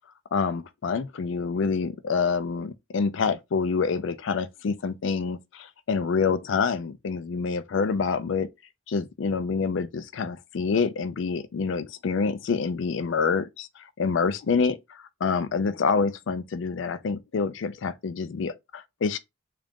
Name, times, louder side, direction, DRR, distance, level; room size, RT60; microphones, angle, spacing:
voice 1, 0.3-8.5 8.9-19.2, left 5 dB, 65° left, 0.4 m, -27 dB
3.7 x 2.4 x 3.5 m
head